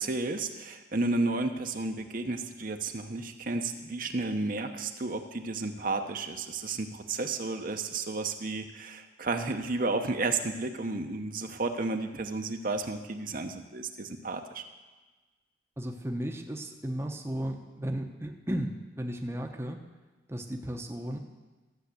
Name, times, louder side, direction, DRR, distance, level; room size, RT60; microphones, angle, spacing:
voice 1, 0.0-14.6, right 3 dB, 45° right, 6 dB, 0.8 m, -32 dB
voice 2, 15.8-19.8 20.3-21.2, equal, 15° right, 3 dB, 0.8 m, -35 dB
13.0 x 7.3 x 8.2 m, 1.2 s
head